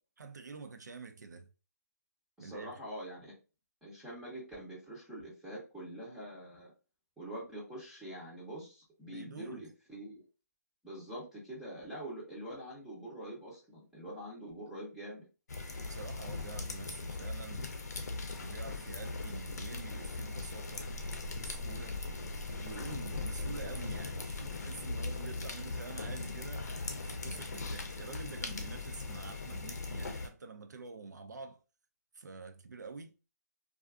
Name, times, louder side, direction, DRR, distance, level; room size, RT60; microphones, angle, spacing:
voice 1, 0.2-1.5 2.4-2.7 9.1-9.6 11.2-11.3 15.9-17.7 18.4-20.9 21.4-22.0 22.5-31.6 32.1-33.1, right 4 dB, 80° right, 0.4 m, -47 dB
voice 2, 2.4-3.3 3.8-6.7 7.2-10.2 10.8-15.2, right 1 dB, 5° right, 0.5 m, -45 dB
sound 1, 15.5-30.3, left 3 dB, 70° left, 0.6 m, -39 dB
2.4 x 2.4 x 2.3 m
hypercardioid pair, 155°, 9 cm